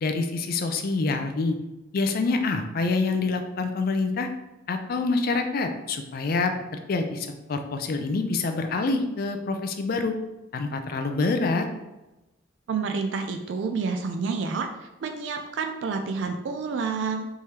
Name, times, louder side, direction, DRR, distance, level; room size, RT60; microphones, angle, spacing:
voice 1, 0.0-1.6 1.9-4.3 4.7-6.5 6.9-10.1 10.5-11.7, left 3 dB, 45° left, 6 dB, 0.4 m, -26 dB
voice 2, 12.7-14.7 15.0-17.3, right 4 dB, 60° right, 5 dB, 0.3 m, -29 dB
3.6 x 3.1 x 2.8 m, 1.0 s
head